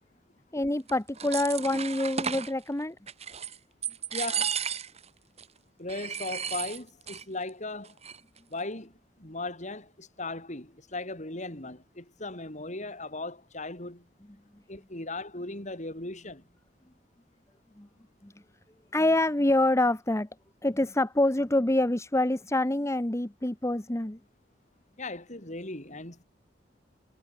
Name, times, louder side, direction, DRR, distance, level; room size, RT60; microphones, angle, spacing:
voice 1, 0.5-3.0 17.8-17.9 18.2-18.3 18.9-20.3 20.6-24.2, left 1 dB, 15° left, 1.0 m, -26 dB
sound 1, 0.9-2.5 3.1-3.6 3.8-5.1 5.4-5.5 5.9-7.2 7.5-7.6 7.9-8.4, right 7 dB, 35° right, 2.8 m, -34 dB
voice 2, 4.1-4.6 5.8-8.0 8.5-14.1 14.7-16.4 25.0-26.2, left 2 dB, 40° left, 6.4 m, -37 dB
head